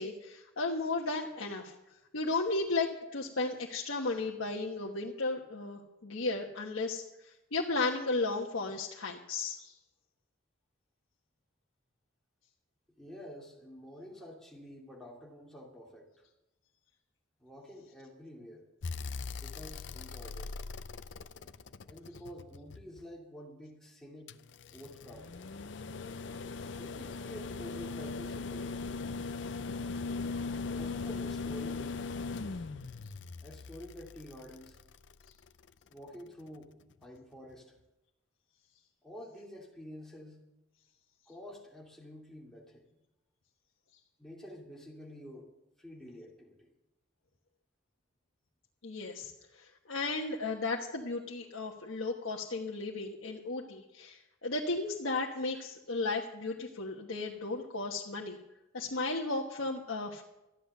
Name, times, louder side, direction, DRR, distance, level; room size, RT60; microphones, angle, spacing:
voice 1, 0.0-1.7 2.1-7.0 7.5-9.7 48.8-49.3 49.6-58.4 58.7-60.2, left 3 dB, 85° left, -1 dB, 1.2 m, -34 dB
voice 2, 13.0-16.1 17.4-18.7 19.4-20.5 21.9-24.4 24.7-25.3 26.8-28.8 30.7-32.0 32.5-32.6 33.4-34.8 35.9-36.7 37.0-37.7 39.0-40.4 41.3-42.9 44.2-45.5 45.8-46.7 55.5-55.7 56.4-56.6 58.5-58.6, equal, ahead, -3 dB, 2.8 m, -49 dB
sound 1, 18.8-23.0 24.3-35.5 37.0-37.1, left 4 dB, 60° left, 0.5 m, -39 dB
14.0 x 10.0 x 6.7 m, 0.95 s
head